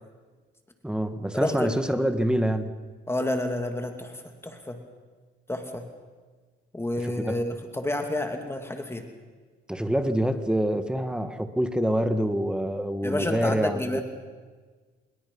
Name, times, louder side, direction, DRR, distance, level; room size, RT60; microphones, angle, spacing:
voice 1, 0.8-2.7 7.0-7.4 9.7-14.0, equal, 5° right, 9 dB, 1.8 m, -26 dB
voice 2, 1.3-1.7 3.1-4.8 5.5-5.9 6.7-9.0 13.0-14.0, left 1 dB, 10° left, 5 dB, 2.5 m, -30 dB
26.0 x 22.0 x 5.6 m, 1.4 s
cardioid pair, 90°, 20 cm